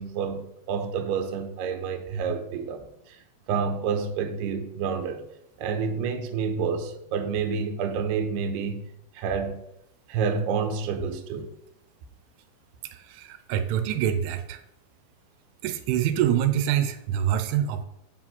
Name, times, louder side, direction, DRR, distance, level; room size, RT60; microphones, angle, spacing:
voice 1, 0.0-2.8 3.5-5.2 5.6-8.8 9.2-9.6 10.1-11.5, right 6 dB, 70° right, 2.8 m, -28 dB
voice 2, 13.1-14.6 15.6-17.8, right 10 dB, 90° right, 3.2 m, -25 dB
8.9 x 5.1 x 7.5 m
omnidirectional pair, 5.5 m